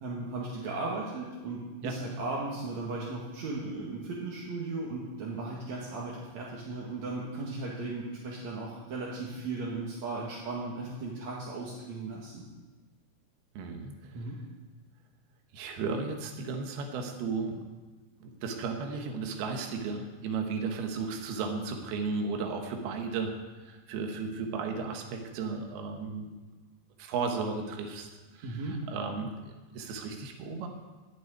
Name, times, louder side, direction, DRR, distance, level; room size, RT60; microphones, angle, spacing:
voice 1, 0.0-12.5 14.1-14.4 28.4-28.8, right 3 dB, 50° right, -5 dB, 2.6 m, -36 dB
voice 2, 13.5-14.3 15.5-17.6 18.2-23.3 23.6-26.3 27.0-30.7, right 4 dB, 75° right, 4 dB, 3.2 m, -35 dB
14.5 x 6.2 x 9.6 m, 1.3 s
omnidirectional pair, 4.7 m